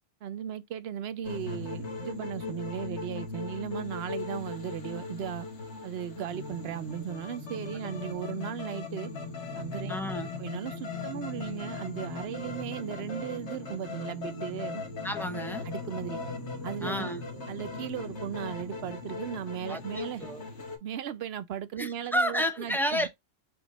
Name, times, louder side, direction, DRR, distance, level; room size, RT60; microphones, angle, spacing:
voice 1, 0.2-5.5 5.8-9.1 9.5-10.0 10.4-14.8 15.6-16.2 16.6-17.1 17.5-20.2 20.8-23.1, right 9 dB, 60° right, 0.7 m, -36 dB
sound 1, 1.2-20.8, left 3 dB, 60° left, 1.6 m, -38 dB
voice 2, 9.9-10.3 15.0-15.7 16.8-17.2 19.7-19.8 20.2-20.4 21.8-23.1, equal, 5° left, 0.3 m, -30 dB
6.9 x 2.4 x 3.0 m
omnidirectional pair, 1.3 m